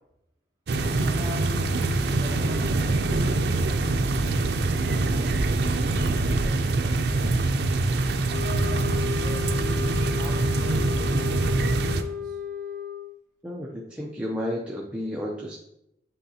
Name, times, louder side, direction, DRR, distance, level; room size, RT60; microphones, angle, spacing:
sound 1, 0.7-12.0, right 2 dB, 70° right, 0.5 m, -24 dB
voice 1, 1.0-1.7 2.1-8.0 9.0-12.4, equal, 25° right, -6 dB, 2.2 m, -43 dB
sound 2, 8.3-13.2, left 7 dB, 45° right, 0.8 m, -34 dB
voice 2, 13.4-15.6, equal, 5° right, -3 dB, 0.5 m, -32 dB
9.0 x 3.9 x 2.8 m, 0.82 s
head